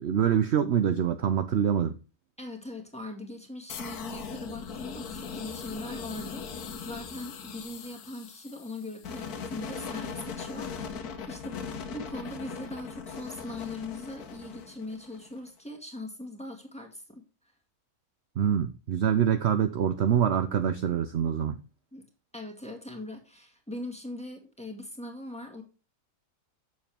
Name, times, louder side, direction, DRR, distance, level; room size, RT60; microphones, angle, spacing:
voice 1, 0.0-2.0 18.4-21.5, right 8 dB, 55° right, 0.8 m, -25 dB
voice 2, 2.4-11.6 11.9-17.2 21.9-22.1 22.3-25.6, left 2 dB, 5° left, 1.8 m, -41 dB
sound 1, 3.7-15.5, left 6 dB, 75° left, 1.5 m, -39 dB
8.1 x 7.0 x 3.4 m
omnidirectional pair, 1.6 m